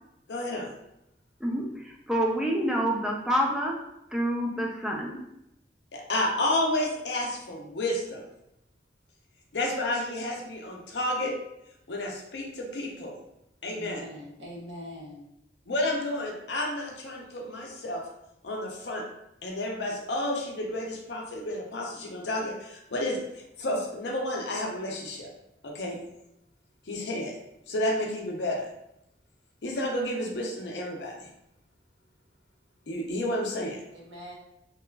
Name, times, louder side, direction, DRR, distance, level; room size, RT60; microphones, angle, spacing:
voice 1, 0.3-0.7 5.9-8.2 9.5-11.3 11.9-13.2 13.6-14.0 15.7-18.0 18.4-19.0 19.4-25.3 25.6-26.0 26.9-27.3 27.7-28.7 29.6-31.3 32.9-33.8, left 1 dB, 70° left, 0 dB, 0.6 m, -31 dB
voice 2, 1.4-3.8 4.1-5.2, equal, 5° right, -1 dB, 0.4 m, -27 dB
voice 3, 13.6-15.2 33.9-34.3, equal, 90° right, -3 dB, 0.8 m, -42 dB
2.9 x 2.3 x 2.3 m, 0.84 s
head